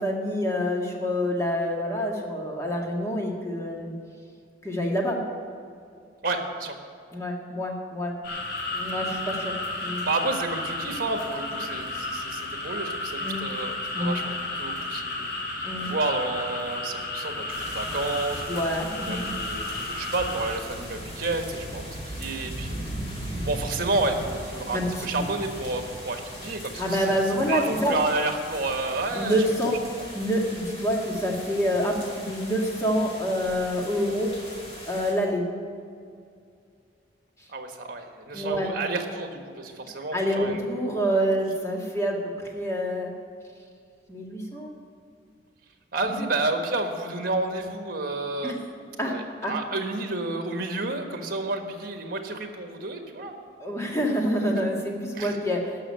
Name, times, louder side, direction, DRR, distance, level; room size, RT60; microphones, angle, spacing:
voice 1, 0.0-3.9 4.6-5.2 7.1-8.1 8.7-9.5 9.8-10.1 13.2-13.4 14.0-14.2 15.6-15.9 18.5-19.3 24.7-25.3 26.8-28.0 29.1-29.7 30.1-34.3 34.9-35.4 38.3-38.7 40.1-43.1 44.1-44.7 46.0-46.2 48.4-48.5 49.0-49.2 49.4-49.5 53.6-55.7, equal, 15° left, -1 dB, 1.8 m, -27 dB
voice 2, 6.2-6.8 10.0-18.5 19.0-22.8 23.4-27.1 27.5-29.4 37.5-40.6 45.9-48.5 49.1-53.3 55.1-55.4, right 2 dB, 50° right, 5 dB, 1.5 m, -30 dB
sound 1, 8.2-20.6, left 2 dB, 60° left, 3.2 m, -33 dB
sound 2, 17.5-35.1, equal, 35° left, 2.5 m, -38 dB
13.5 x 6.4 x 9.5 m, 2.3 s
head